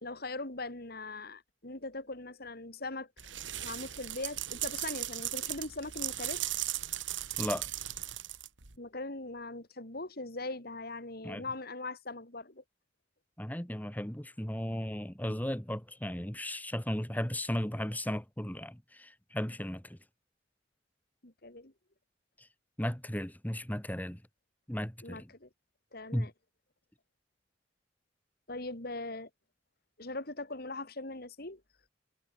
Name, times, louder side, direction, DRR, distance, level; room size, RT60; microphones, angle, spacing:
voice 1, 0.0-3.1 3.6-6.4 8.8-12.6 21.2-21.7 25.0-25.5 25.9-26.3 28.5-29.3 30.0-31.6, left 2 dB, 55° left, 3.4 m, -40 dB
sound 1, 3.2-8.7, right 13 dB, 85° right, 2.3 m, -37 dB
voice 2, 7.4-7.7 11.2-11.4 13.4-20.0 22.4-22.5 22.8-24.2 24.7-25.3 26.1-26.3, equal, 10° left, 1.8 m, -35 dB
head